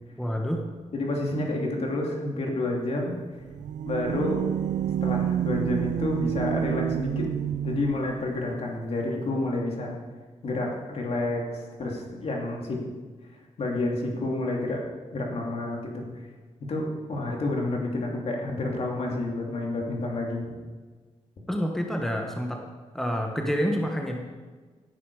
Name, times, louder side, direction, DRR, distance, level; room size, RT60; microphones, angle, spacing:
voice 1, 0.2-0.6 21.5-22.6 22.9-24.2, equal, 5° left, 1 dB, 1.3 m, -28 dB
voice 2, 0.9-3.2 3.8-4.5 5.0-7.3 7.6-10.0 10.4-12.8 13.6-14.8 15.1-16.1 16.7-20.5, left 2 dB, 60° left, -1 dB, 2.9 m, -29 dB
sound 1, 3.4-8.2, right 9 dB, 85° right, 0.5 m, -28 dB
17.0 x 10.0 x 4.9 m, 1.4 s
wide cardioid pair, 145°, 12 cm